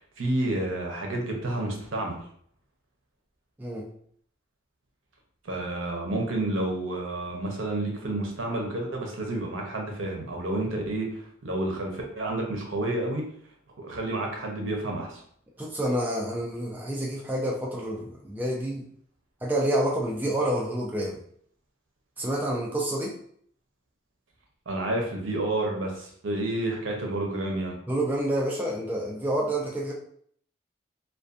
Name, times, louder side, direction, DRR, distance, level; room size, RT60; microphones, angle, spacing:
voice 1, 0.2-2.2 5.4-13.2 13.8-15.2 24.7-27.8, right 2 dB, 85° right, 1 dB, 0.7 m, -30 dB
voice 2, 15.6-18.8 19.4-21.2 22.2-23.1 27.9-29.9, right 1 dB, 10° right, -3 dB, 0.3 m, -28 dB
2.5 x 2.2 x 2.4 m, 0.62 s
head